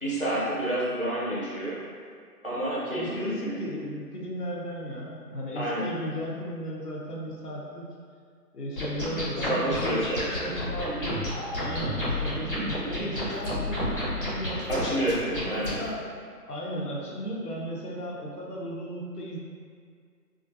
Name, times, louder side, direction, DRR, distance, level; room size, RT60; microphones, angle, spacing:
voice 1, 0.0-1.8 2.4-3.6 5.6-5.9 9.4-10.5 14.7-15.8, right 1 dB, 40° right, -7 dB, 0.5 m, -29 dB
voice 2, 2.9-7.9 8.5-10.0 10.4-11.3 11.6-15.2 15.6-16.0 16.5-19.4, equal, 70° left, -4 dB, 0.9 m, -35 dB
sound 1, 8.8-15.8, left 1 dB, 30° left, 0.9 m, -31 dB
3.7 x 2.5 x 2.5 m, 2.1 s
figure-of-eight pair, 165°, 49 cm